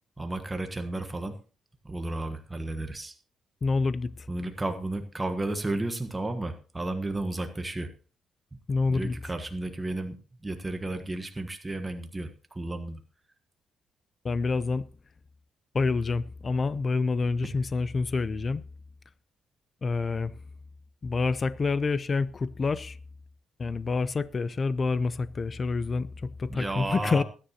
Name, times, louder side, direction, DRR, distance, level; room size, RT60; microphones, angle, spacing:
voice 1, 0.2-1.4 1.8-3.1 4.3-7.9 8.9-10.2 10.4-13.0 26.5-27.2, right 2 dB, 15° right, 1.3 m, -33 dB
voice 2, 3.6-4.1 8.7-9.1 14.2-14.8 15.7-18.6 19.8-20.3 21.0-23.0 23.6-27.2, left 4 dB, 35° left, 0.6 m, -27 dB
22.0 x 9.9 x 2.9 m
cardioid pair, 90°, 0 cm